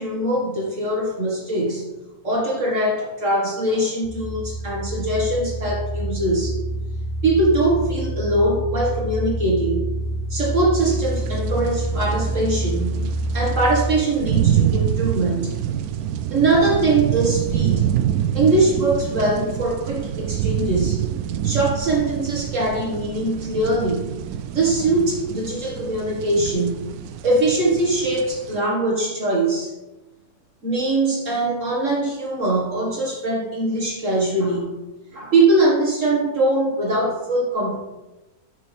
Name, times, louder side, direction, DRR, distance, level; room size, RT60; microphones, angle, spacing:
voice 1, 0.0-1.9 2.2-6.6 7.2-9.9 10.3-15.6 16.3-18.0 18.3-21.1 21.4-24.1 24.5-26.8 27.2-29.7 30.6-34.8 35.1-37.8, right 2 dB, 55° right, -2 dB, 1.9 m, -22 dB
sound 1, 4.0-14.0, right 1 dB, 20° left, 1.8 m, -27 dB
sound 2, 10.8-28.6, right 10 dB, 75° right, 1.0 m, -26 dB
11.0 x 6.6 x 3.4 m, 1.0 s
omnidirectional pair, 1.7 m